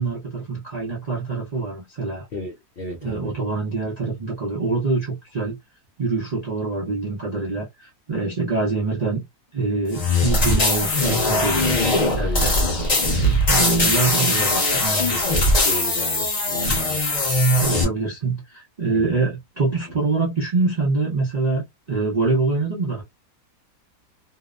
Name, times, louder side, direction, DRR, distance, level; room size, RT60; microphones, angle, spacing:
voice 1, 0.0-2.3 3.0-5.6 6.0-9.2 9.5-11.8 12.0-12.5 13.0-13.2 13.5-15.2 17.6-23.0, right 3 dB, 60° right, 0.4 m, -25 dB
voice 2, 2.3-3.3 12.2-12.5 14.7-15.2 15.5-17.3 18.9-19.1, left 1 dB, 75° left, 0.5 m, -34 dB
sound 1, 9.9-17.8, left 1 dB, 35° left, 0.8 m, -20 dB
2.7 x 2.1 x 2.3 m
omnidirectional pair, 1.7 m